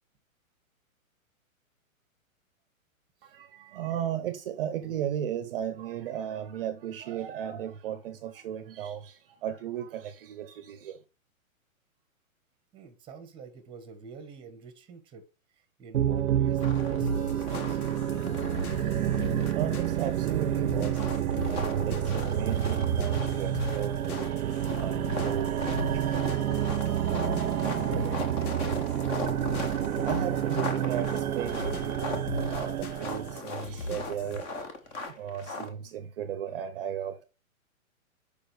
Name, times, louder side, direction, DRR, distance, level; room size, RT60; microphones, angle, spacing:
voice 1, 3.4-9.1 9.4-11.0 19.6-21.0 21.4-24.3 24.8-25.5 26.0-26.1 30.0-32.0 32.5-34.5 35.2-37.2, right 10 dB, 40° right, 0.7 m, -35 dB
voice 2, 12.7-15.2 15.8-17.9 27.6-29.2, right 6 dB, 10° right, 1.0 m, -46 dB
sound 1, 15.9-33.4, right 11 dB, 90° right, 0.7 m, -29 dB
sound 2, 16.6-17.1 17.4-18.8 19.1-20.3 20.8-35.7, left 2 dB, 15° left, 0.5 m, -39 dB
sound 3, 17.0-34.4, left 2 dB, 85° left, 1.1 m, -39 dB
6.7 x 5.0 x 3.2 m
hypercardioid pair, 150°, 42 cm